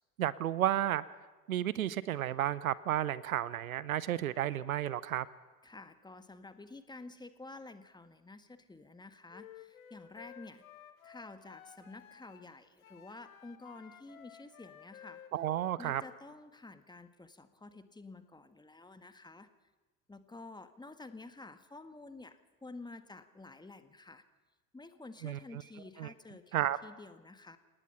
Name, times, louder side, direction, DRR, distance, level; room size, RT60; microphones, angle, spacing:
voice 1, 0.2-1.0 1.5-5.3 15.3-16.0 25.2-25.6 26.0-26.1 26.5-26.8, right 12 dB, 75° right, 19 dB, 0.8 m, -32 dB
voice 2, 5.6-10.6 11.0-15.2 15.8-19.5 20.1-24.2 24.7-27.6, left 3 dB, 10° left, 10 dB, 1.7 m, -50 dB
Wind instrument woodwind instrument, 9.3-12.5 12.8-16.2, left 9 dB, 70° left, 1.6 m, -55 dB
28.5 x 19.0 x 5.7 m, 1.2 s
figure-of-eight pair, 70°, 42 cm